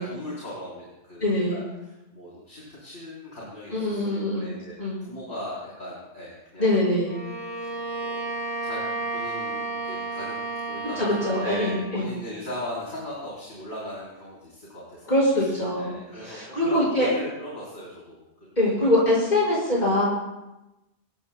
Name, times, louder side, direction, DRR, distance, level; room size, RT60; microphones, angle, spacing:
voice 1, 0.0-6.7 7.6-7.7 8.0-8.3 8.6-18.5 18.8-19.1, left 1 dB, 70° left, -6 dB, 4.2 m, -38 dB
voice 2, 1.2-1.6 3.7-4.5 4.8-5.0 6.6-7.2 11.0-12.1 15.1-15.9 16.2-17.1 18.6-20.0, left 1 dB, 40° left, -6 dB, 5.6 m, -23 dB
Bowed string instrument, 7.0-11.9, right 3 dB, 10° left, 4.9 m, -32 dB
26.5 x 17.5 x 2.2 m, 0.99 s
omnidirectional pair, 1.2 m